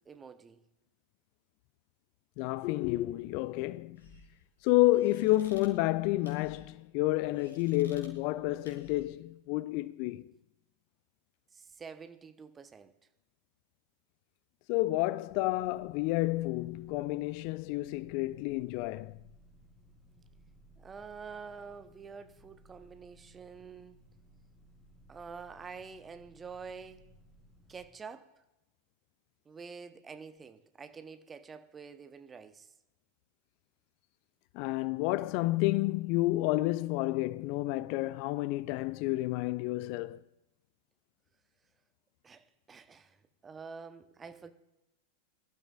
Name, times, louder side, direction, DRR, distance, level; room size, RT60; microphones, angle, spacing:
voice 1, 0.1-0.6 11.5-12.9 20.8-24.0 25.1-27.0 27.7-28.3 29.5-32.7 42.2-43.2 43.4-44.5, right 5 dB, 20° right, 0.9 m, -47 dB
voice 2, 2.4-4.0 4.6-10.2 14.7-19.2 34.5-40.2, left 18 dB, 45° left, 0.3 m, -30 dB
sound 1, 3.9-9.2, left 1 dB, 70° left, 2.9 m, -58 dB
sound 2, 15.3-27.9, right 1 dB, 10° left, 4.6 m, -60 dB
22.5 x 12.0 x 2.4 m
figure-of-eight pair, 90°, 0 cm